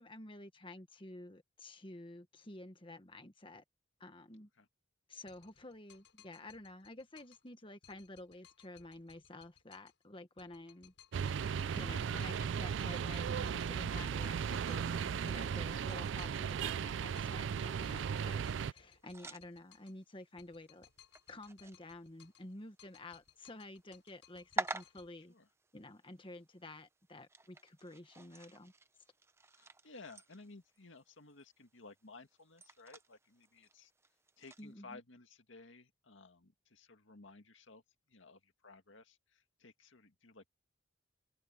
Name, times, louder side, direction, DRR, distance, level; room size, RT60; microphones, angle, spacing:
voice 1, 0.0-3.6 4.0-4.5 5.1-11.3 11.7-20.9 21.3-25.3 25.7-28.7 34.6-35.0, left 2 dB, 30° left, 1.5 m, -51 dB
sound 1, 5.3-7.5 7.8-10.0 10.4-12.5 12.8-17.5 17.8-20.0 20.4-22.5 22.8-25.1, left 10 dB, 75° left, 6.6 m, -64 dB
sound 2, 11.1-18.7, right 7 dB, 75° right, 0.4 m, -36 dB
sound 3, 18.5-34.7, right 2 dB, 15° right, 0.8 m, -50 dB
voice 2, 29.5-33.9 34.4-37.8 38.1-40.5, left 3 dB, 90° left, 2.0 m, -56 dB
open air
head